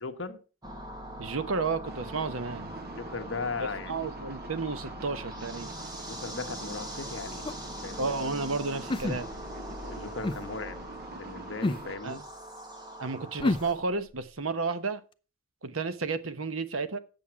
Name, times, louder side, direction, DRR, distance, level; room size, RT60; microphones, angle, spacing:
voice 1, 0.0-0.4 3.0-4.1 6.1-7.5 7.8-8.1 9.8-12.2, left 4 dB, 65° left, 1.2 m, -38 dB
sound 1, 0.6-13.7, right 1 dB, 20° right, 1.6 m, -42 dB
voice 2, 1.2-2.7 3.6-5.7 8.0-9.3 12.0-12.2 13.0-15.0 15.6-17.0, right 4 dB, 90° right, 1.0 m, -32 dB
sound 2, 1.8-12.0, right 3 dB, 50° right, 0.7 m, -47 dB
sound 3, 7.4-7.7 8.9-9.5 10.2-10.4 11.6-11.9 13.4-13.7, left 2 dB, 25° left, 0.4 m, -29 dB
9.1 x 7.2 x 5.8 m
head